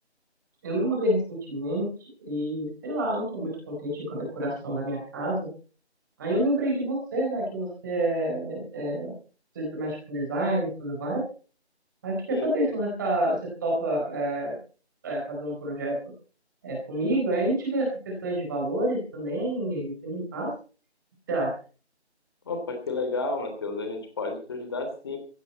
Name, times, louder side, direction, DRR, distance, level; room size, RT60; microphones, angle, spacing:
voice 1, 0.6-5.5 6.2-9.2 9.5-11.2 12.0-13.4 13.6-14.6 15.0-16.0 16.6-20.5 21.3-21.5, right 1 dB, 15° right, -2 dB, 4.3 m, -28 dB
voice 2, 22.5-25.2, left 3 dB, 20° left, 6 dB, 3.1 m, -31 dB
16.5 x 14.5 x 4.3 m, 0.39 s
figure-of-eight pair, 165°, 34 cm